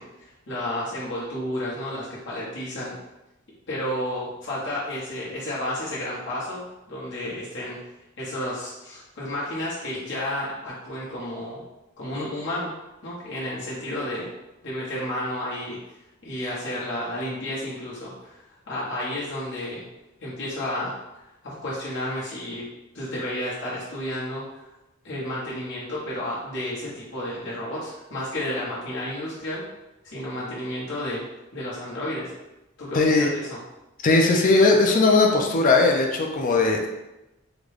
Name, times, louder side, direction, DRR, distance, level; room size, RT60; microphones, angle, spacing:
voice 1, 0.0-2.9 3.7-6.6 6.9-7.8 8.2-11.6 12.0-12.7 13.0-14.3 14.6-15.8 16.2-19.8 20.2-20.9 21.4-22.7 22.9-24.6 25.0-29.6 30.0-31.2 31.5-32.3 32.8-33.6, left 1 dB, 60° left, -7 dB, 1.0 m, -31 dB
voice 2, 32.9-33.3 34.0-36.9, left 3 dB, 40° left, 2 dB, 0.5 m, -19 dB
3.8 x 2.2 x 3.2 m, 0.96 s
head